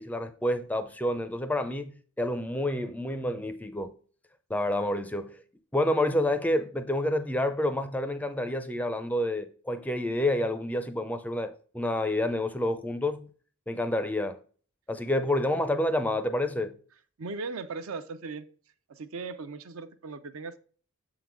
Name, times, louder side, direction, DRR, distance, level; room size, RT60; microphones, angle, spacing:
voice 1, 0.0-1.9 2.2-4.0 4.5-5.4 5.7-13.3 13.7-14.4 14.9-16.8, left 1 dB, 5° left, 0.4 m, -28 dB
voice 2, 17.2-18.5 18.9-20.6, right 4 dB, 70° right, 0.6 m, -38 dB
7.2 x 3.8 x 4.5 m
head